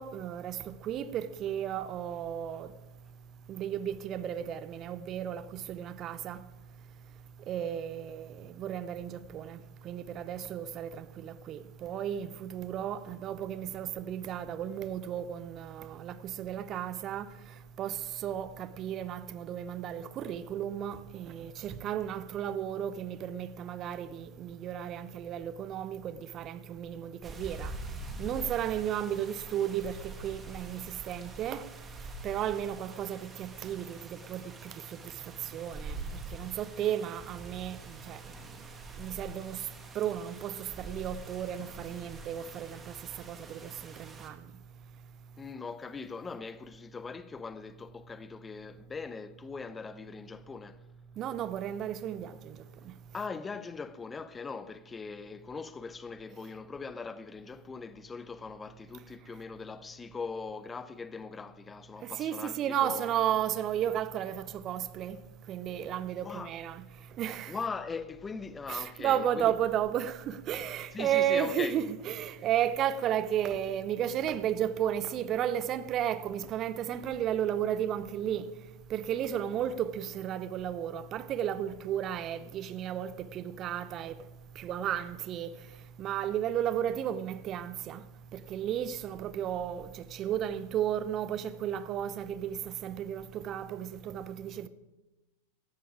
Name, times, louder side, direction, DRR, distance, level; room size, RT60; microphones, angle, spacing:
voice 1, 0.0-2.7 3.5-6.4 7.5-9.6 9.8-17.3 17.8-27.7 28.2-31.7 32.2-35.1 35.5-36.0 36.3-38.2 39.0-39.6 39.9-42.9 43.2-44.4 51.2-52.6 52.8-52.9 62.0-65.2 65.5-66.8 67.2-67.6 68.7-78.5 78.9-84.2 84.6-85.5 86.0-88.0 88.3-94.7, right 10 dB, 30° right, 0.7 m, -33 dB
sound 1, 27.2-44.3, right 2 dB, 15° right, 2.0 m, -45 dB
voice 2, 45.4-50.8 53.1-63.1 66.2-66.5 67.5-69.5 70.9-71.7, left 4 dB, 15° left, 0.6 m, -40 dB
17.0 x 12.5 x 4.9 m
figure-of-eight pair, 90°, 0 cm